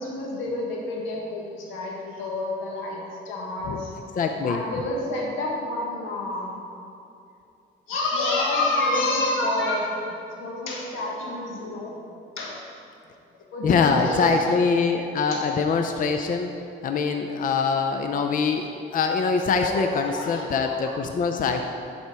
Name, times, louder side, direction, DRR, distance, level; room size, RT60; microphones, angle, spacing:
voice 1, 0.0-3.9 4.4-6.6 7.9-12.0 12.4-12.6 13.3-14.5 15.3-15.4 17.4-17.5 19.5-20.9, left 2 dB, 90° left, -2 dB, 1.6 m, -29 dB
voice 2, 4.2-4.6 13.6-16.5 16.8-21.6, left 5 dB, 45° left, 5 dB, 0.5 m, -23 dB
11.0 x 4.3 x 4.7 m, 2.6 s
cardioid pair, 90°, 20 cm